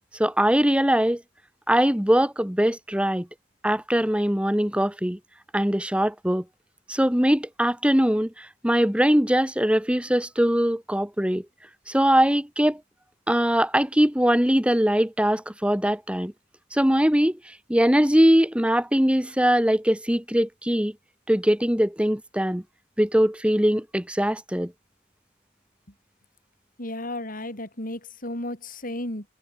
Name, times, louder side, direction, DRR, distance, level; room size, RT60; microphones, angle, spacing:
voice 1, 0.2-1.2 1.7-3.3 3.6-5.2 5.5-6.4 6.9-11.4 11.9-12.8 13.3-16.3 16.7-17.4 17.7-20.9 21.3-22.6 23.0-24.7, equal, 5° right, 1.9 m, -21 dB
voice 2, 26.8-29.3, left 1 dB, 45° left, 7.8 m, -33 dB
head